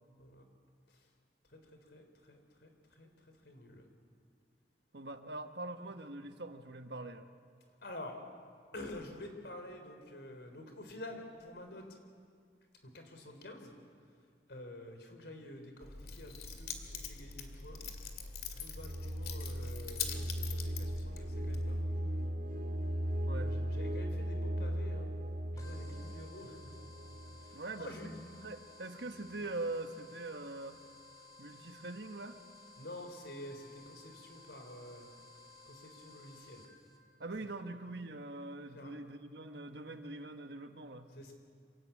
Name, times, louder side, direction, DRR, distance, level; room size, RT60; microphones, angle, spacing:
voice 1, 1.9-3.1 3.4-3.9 7.8-8.2 8.7-11.9 12.8-13.7 14.5-17.8 18.5-22.2 23.3-25.1 25.5-26.7 27.4-28.2 32.8-35.1 35.7-36.6 38.7-39.0 41.1-41.3, left 1 dB, 75° left, 5 dB, 3.8 m, -49 dB
voice 2, 4.9-7.3 23.2-23.6 27.5-27.9 28.4-30.8 31.4-32.4 37.2-41.1, right 2 dB, 75° right, 7 dB, 1.4 m, -43 dB
Keys jangling, 15.8-21.8, left 5 dB, 60° left, 2.3 m, -43 dB
sound 1, 18.8-28.6, equal, 55° right, 1.7 m, -38 dB
sound 2, 25.6-37.0, left 3 dB, 20° left, 3.5 m, -57 dB
26.5 x 17.5 x 8.5 m, 2.1 s
head